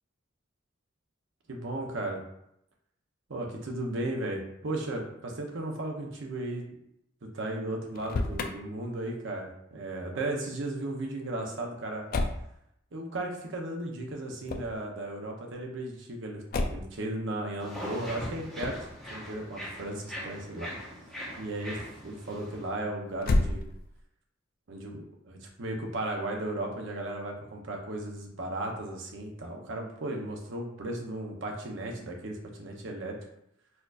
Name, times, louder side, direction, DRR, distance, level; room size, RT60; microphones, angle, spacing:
voice 1, 1.5-2.2 3.3-6.6 7.2-12.0 12.9-16.4 16.7-18.8 19.1-20.7 21.4-23.7 24.7-33.1, right 1 dB, 65° right, 1 dB, 0.7 m, -35 dB
Motor vehicle (road), 7.8-8.5 12.1-12.5 14.4-14.8 16.5-17.0 18.6-18.9 23.2-24.0, left 2 dB, 45° left, 0.3 m, -29 dB
sound 1, 17.6-22.7, equal, ahead, 0.8 m, -41 dB
4.2 x 2.7 x 2.4 m, 0.77 s
head